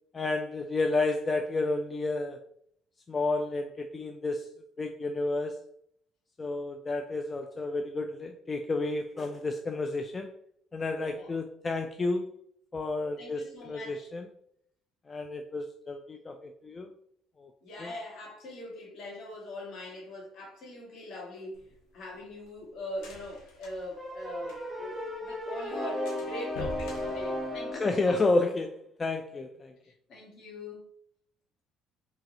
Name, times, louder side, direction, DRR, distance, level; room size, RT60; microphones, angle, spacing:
voice 1, 0.1-2.4 3.1-4.5 4.8-5.6 6.4-10.3 10.7-12.3 12.7-14.3 15.1-16.9 17.4-17.5 17.8-17.9 27.7-29.7, left 3 dB, 30° left, 5 dB, 0.3 m, -31 dB
voice 2, 13.2-14.1 17.6-21.6 21.9-28.2 29.8-30.8, left 1 dB, 60° left, -2 dB, 1.5 m, -42 dB
sound 1, 21.5-24.9 25.2-25.3 25.6-25.7 26.1-28.1, left 2 dB, 80° left, 1.0 m, -45 dB
sound 2, 24.0-28.0, left 1 dB, 10° right, 1.1 m, -35 dB
3.0 x 2.7 x 3.8 m, 0.68 s
supercardioid pair, 80°, 0 cm